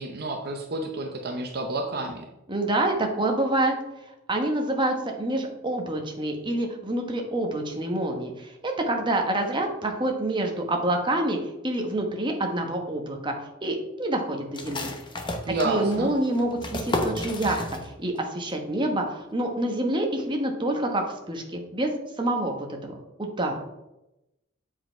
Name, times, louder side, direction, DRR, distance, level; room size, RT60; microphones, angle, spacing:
voice 1, 0.0-2.3 15.5-16.1, right 2 dB, 50° right, 3 dB, 0.7 m, -30 dB
voice 2, 2.5-3.7 4.3-11.4 11.6-13.3 13.6-14.9 15.2-15.3 15.6-21.9 22.2-22.6 22.8-23.5, right 1 dB, 25° right, 2 dB, 1.1 m, -27 dB
sound 1, 14.5-18.2 18.5-18.6 19.0-19.5, left 2 dB, 25° left, 0.8 m, -32 dB
7.7 x 4.8 x 4.4 m, 0.92 s
head